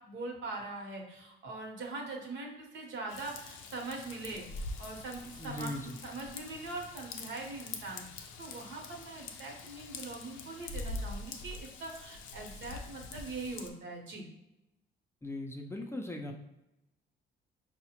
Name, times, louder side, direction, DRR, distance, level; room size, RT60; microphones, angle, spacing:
voice 1, 0.0-14.3, right 3 dB, 70° right, 0 dB, 0.9 m, -42 dB
Raindrop / Vehicle horn car horn honking / Trickle dribble, 3.1-13.7, left 3 dB, 85° left, 0.4 m, -44 dB
voice 2, 5.4-5.8 15.2-16.3, left 1 dB, 15° left, 1 dB, 0.4 m, -39 dB
4.7 x 2.1 x 2.8 m, 0.91 s
cardioid pair, 90°, 20 cm